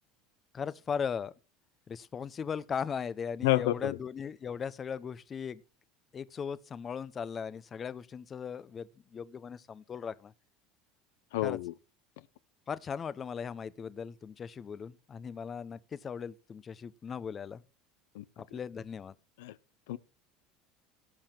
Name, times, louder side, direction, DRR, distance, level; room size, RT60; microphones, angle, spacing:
voice 1, 0.5-1.3 1.9-5.6 6.1-10.3 11.4-11.6 12.7-17.6 18.4-19.1, left 6 dB, 30° left, 0.8 m, -38 dB
voice 2, 3.4-4.0 11.3-11.7 18.2-18.3 19.4-19.5 19.9-20.0, left 16 dB, 80° left, 0.6 m, -29 dB
17.0 x 5.7 x 4.5 m
supercardioid pair, 95°, 0 cm